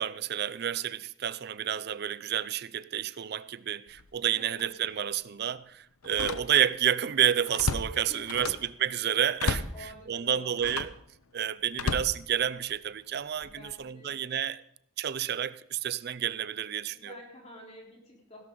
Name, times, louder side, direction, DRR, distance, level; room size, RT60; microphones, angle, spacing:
voice 1, 0.0-10.9 11.3-14.6 15.0-17.1, right 9 dB, 50° right, 0.4 m, -30 dB
Slam, 3.9-4.1 4.6-4.7 6.0-6.8 7.2-8.7 9.4-9.8 10.6-11.0 11.7-12.8 13.4-13.7, left 4 dB, 90° left, 0.7 m, -34 dB
voice 2, 4.4-4.7 8.1-8.6 9.7-10.6 13.4-14.2 16.9-18.4, left 1 dB, 30° left, 3.8 m, -49 dB
16.5 x 12.0 x 3.8 m
head